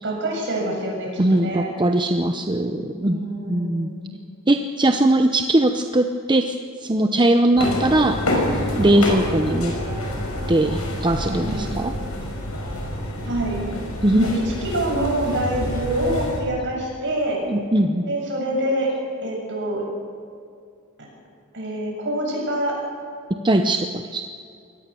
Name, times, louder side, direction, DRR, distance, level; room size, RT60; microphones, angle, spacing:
voice 1, 0.0-1.7 3.0-4.2 8.8-9.1 11.5-11.7 13.2-13.6 14.1-14.3 14.6-17.4 18.1-18.9 19.2-19.8 21.5-22.8, right 1 dB, 60° right, -1 dB, 7.6 m, -26 dB
voice 2, 1.2-3.9 4.5-6.5 6.8-8.2 8.8-9.7 10.2-11.9 14.0-14.4 17.5-18.1 23.3-24.2, right 1 dB, 20° right, 6 dB, 0.8 m, -20 dB
sound 1, 7.6-16.4, left 1 dB, 85° left, 5.6 m, -27 dB
23.5 x 18.0 x 7.0 m, 2.4 s
head